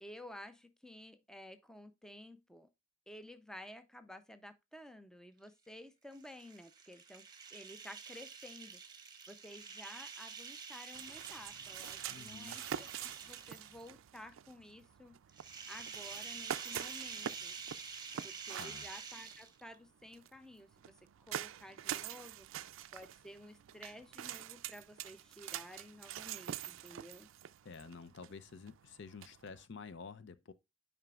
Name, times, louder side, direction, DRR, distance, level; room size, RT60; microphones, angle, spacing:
voice 1, 0.0-2.7 3.1-8.8 9.3-15.2 15.7-17.6 18.2-27.3, left 1 dB, 5° left, 0.5 m, -53 dB
sound 1, 6.1-13.9 15.3-19.8, right 5 dB, 20° right, 1.0 m, -48 dB
sound 2, 10.9-29.7, right 10 dB, 85° right, 0.4 m, -46 dB
voice 2, 12.1-12.6 18.6-18.9 27.6-30.5, left 5 dB, 65° left, 0.5 m, -50 dB
10.5 x 5.0 x 2.4 m
head